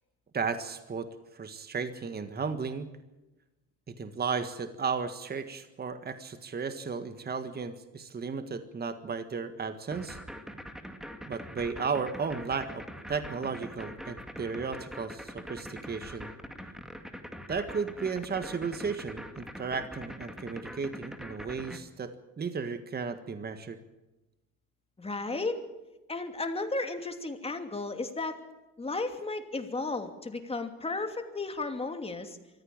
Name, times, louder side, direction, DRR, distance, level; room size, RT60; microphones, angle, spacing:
voice 1, 0.3-1.1 1.3-2.9 3.9-10.2 11.2-16.3 17.5-23.8, right 5 dB, 30° right, 9 dB, 1.6 m, -34 dB
sound 1, 9.9-21.8, equal, ahead, 2.2 m, -43 dB
voice 2, 25.0-25.6 26.1-28.4 28.8-32.4, left 3 dB, 20° left, 6 dB, 2.8 m, -34 dB
24.0 x 15.0 x 8.9 m, 1.0 s
cardioid pair, 110°, 32 cm